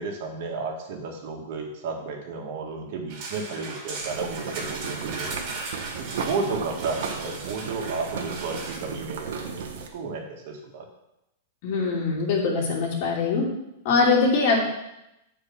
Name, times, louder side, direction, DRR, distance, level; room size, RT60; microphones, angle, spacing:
voice 1, 0.0-5.6 6.0-10.9, right 4 dB, 55° right, 2 dB, 1.9 m, -33 dB
sound 1, 3.1-8.8, right 3 dB, 40° right, 2.6 m, -37 dB
sound 2, 4.0-9.9, right 6 dB, 70° right, 1.3 m, -35 dB
voice 2, 11.6-13.4 13.8-14.6, left 4 dB, 50° left, -2 dB, 2.8 m, -22 dB
8.3 x 4.8 x 6.0 m, 0.88 s
supercardioid pair, 150°, 0 cm